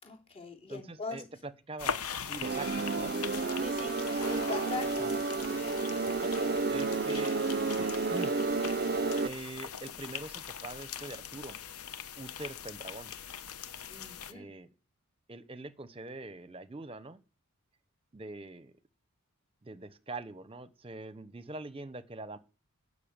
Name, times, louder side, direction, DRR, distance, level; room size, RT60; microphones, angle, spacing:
voice 1, 0.0-1.2 3.6-3.9 4.3-5.1 13.9-14.5, left 3 dB, 25° left, 3.6 m, -40 dB
voice 2, 0.7-3.1 5.0-5.2 6.0-6.3 6.7-7.4 7.7-8.3 9.2-11.6 12.2-13.1 14.3-14.7 15.3-17.2 18.1-18.7 19.6-22.4, right 2 dB, 25° right, 0.9 m, -43 dB
sound 1, 1.8-14.3, left 8 dB, 80° left, 1.0 m, -41 dB
sound 2, 2.4-9.3, right 3 dB, 45° right, 0.6 m, -31 dB
12.5 x 6.6 x 8.9 m
head